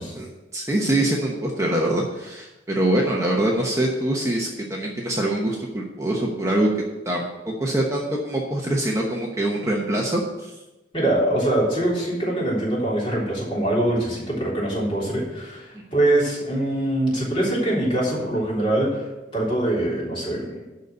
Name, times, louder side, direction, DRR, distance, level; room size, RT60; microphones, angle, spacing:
voice 1, 0.1-6.7 7.0-10.5 15.7-15.8, right 1 dB, 15° right, -1 dB, 0.9 m, -24 dB
voice 2, 10.9-19.0 19.3-20.5, right 1 dB, 30° left, -6 dB, 3.6 m, -23 dB
12.0 x 4.1 x 7.9 m, 1.0 s
head